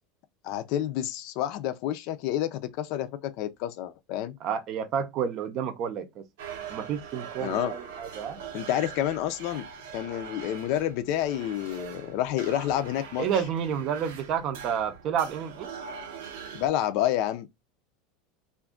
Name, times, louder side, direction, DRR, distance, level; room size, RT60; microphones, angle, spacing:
voice 1, 0.4-4.3 7.4-7.7 8.5-9.7 9.9-13.3 16.5-17.5, left 12 dB, 60° left, 0.4 m, -29 dB
voice 2, 4.4-6.2 6.7-8.4 13.2-15.7, right 8 dB, 45° right, 0.6 m, -30 dB
sound 1, 6.4-16.7, right 7 dB, 85° right, 0.7 m, -42 dB
2.5 x 2.3 x 3.6 m
supercardioid pair, 140°, 0 cm